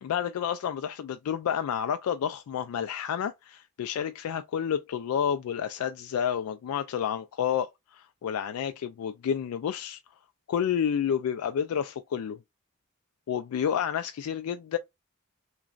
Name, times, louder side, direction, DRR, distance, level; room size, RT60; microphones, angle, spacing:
voice 1, 0.0-10.0 10.5-12.4 13.3-14.8, left 8 dB, 85° left, 0.3 m, -30 dB
3.0 x 2.4 x 2.3 m
head